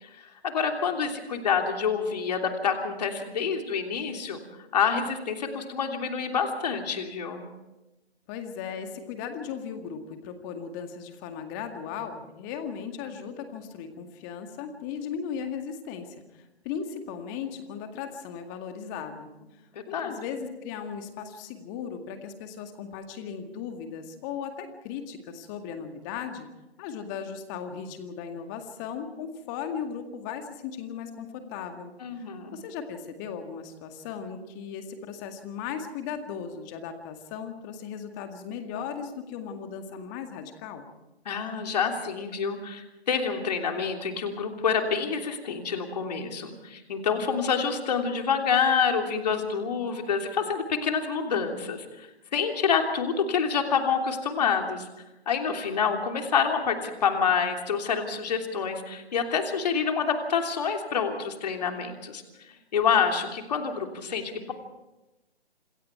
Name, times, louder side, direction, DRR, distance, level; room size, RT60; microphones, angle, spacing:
voice 1, 0.0-4.4 4.7-7.4 19.7-20.2 32.0-32.5 41.2-52.1 52.3-54.9 55.3-62.2 62.7-64.5, left 6 dB, 40° left, 4 dB, 3.2 m, -27 dB
voice 2, 8.3-19.3 19.9-26.5 26.8-40.9, left 7 dB, 20° left, 6 dB, 2.0 m, -37 dB
28.0 x 21.5 x 4.6 m, 0.98 s
figure-of-eight pair, 145°, 32 cm